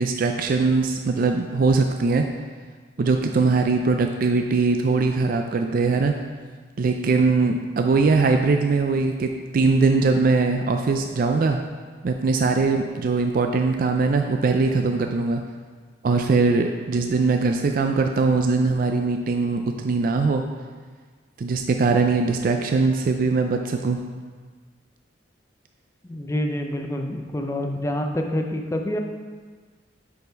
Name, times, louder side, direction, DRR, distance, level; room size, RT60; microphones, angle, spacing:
voice 1, 0.0-2.3 3.0-6.1 6.8-11.6 12.0-15.4 16.0-20.4 21.4-24.0, right 4 dB, 45° right, 4 dB, 0.3 m, -21 dB
voice 2, 26.0-29.0, left 1 dB, 15° left, 3 dB, 0.5 m, -27 dB
6.0 x 5.6 x 4.5 m, 1.5 s
head